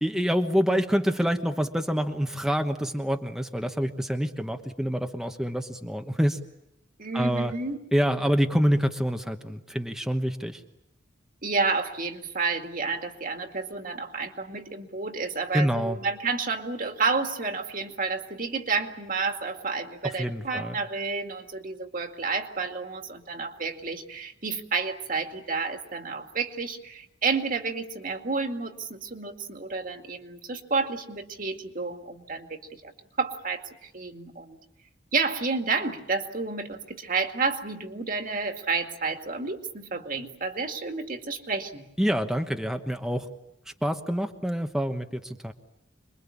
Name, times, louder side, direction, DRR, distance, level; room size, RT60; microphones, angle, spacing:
voice 1, 0.0-6.4 7.1-7.5 7.9-10.6 15.5-16.0 20.0-20.8 42.0-43.3 43.8-45.5, equal, 5° right, 5 dB, 1.1 m, -26 dB
voice 2, 7.0-7.8 11.4-32.9 33.2-34.6 35.1-41.8, right 4 dB, 45° right, 5 dB, 2.2 m, -30 dB
27.0 x 22.5 x 8.6 m, 0.84 s
head